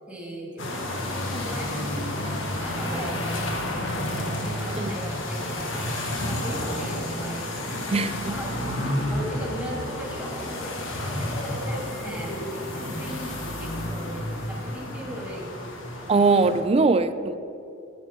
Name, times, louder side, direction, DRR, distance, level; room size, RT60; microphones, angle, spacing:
voice 1, 0.1-3.2 4.3-7.5 8.3-15.5, right 1 dB, 5° right, -3 dB, 2.0 m, -38 dB
sound 1, 0.6-16.6, left 1 dB, 65° left, 1.4 m, -31 dB
voice 2, 7.9-8.4 16.1-17.3, right 3 dB, 30° right, 12 dB, 0.4 m, -21 dB
sound 2, 8.7-13.3, equal, 30° left, 1.3 m, -35 dB
8.4 x 8.2 x 6.6 m, 2.6 s
head